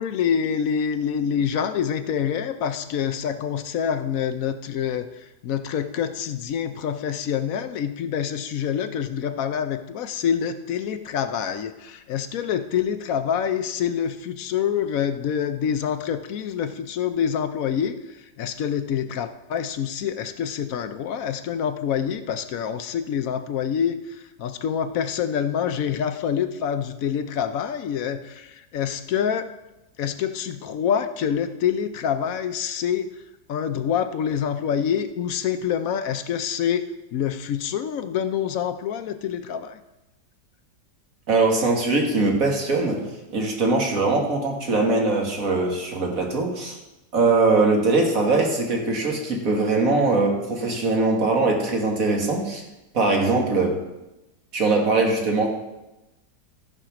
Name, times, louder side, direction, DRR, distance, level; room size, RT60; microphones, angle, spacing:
voice 1, 0.0-5.1 5.4-18.0 18.4-29.5 30.0-33.1 33.5-36.9 37.1-39.8, left 8 dB, 65° left, 9 dB, 0.9 m, -26 dB
voice 2, 41.3-43.0 43.3-46.8 47.1-52.6 52.9-53.8 54.5-55.5, right 3 dB, 50° right, 1 dB, 2.1 m, -21 dB
13.5 x 5.8 x 5.9 m, 0.97 s
omnidirectional pair, 1.9 m